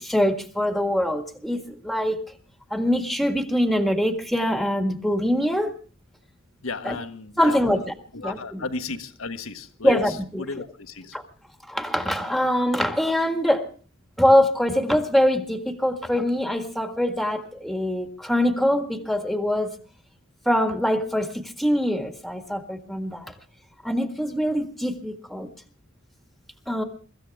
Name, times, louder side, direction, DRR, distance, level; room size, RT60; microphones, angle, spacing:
voice 1, 0.0-2.2 2.7-5.7 6.8-7.0 7.4-7.9 8.2-8.4 9.8-10.4 11.1-11.2 11.6-13.7 14.2-19.7 20.4-23.3 23.8-25.5 26.7-26.8, equal, ahead, 1.7 m, -23 dB
voice 2, 6.6-7.9 8.1-11.2, left 3 dB, 80° left, 1.4 m, -34 dB
24.0 x 14.5 x 3.5 m
head